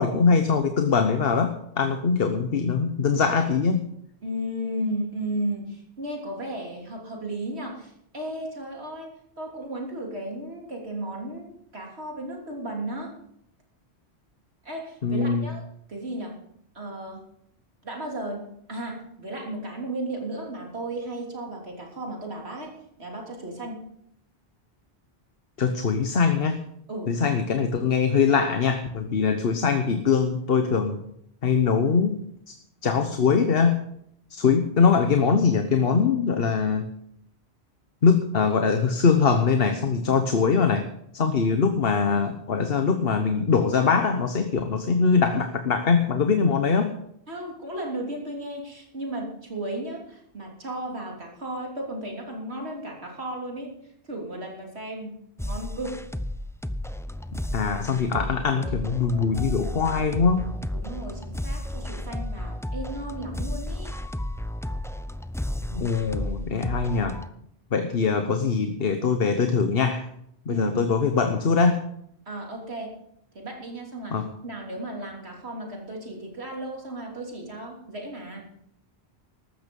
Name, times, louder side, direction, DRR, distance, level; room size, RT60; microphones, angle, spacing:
voice 1, 0.0-3.9 15.0-15.5 25.6-26.6 27.1-31.0 31.4-32.2 32.5-32.6 32.8-33.8 34.3-36.9 38.0-40.9 41.1-46.9 57.5-60.5 65.7-67.2 67.7-70.1 70.5-71.8 74.1-74.3, left 5 dB, 60° left, 7 dB, 1.2 m, -22 dB
voice 2, 4.2-13.2 14.6-16.4 16.7-17.2 17.8-22.7 23.0-23.9 26.9-27.2 44.5-44.6 47.3-53.8 54.0-56.0 60.7-63.9 70.5-70.8 72.3-73.0 73.3-78.5, right 1 dB, 75° right, 0 dB, 3.5 m, -34 dB
sound 1, 55.4-67.3, left 1 dB, 5° left, 0.3 m, -33 dB
14.5 x 12.5 x 5.4 m, 0.73 s
omnidirectional pair, 1.1 m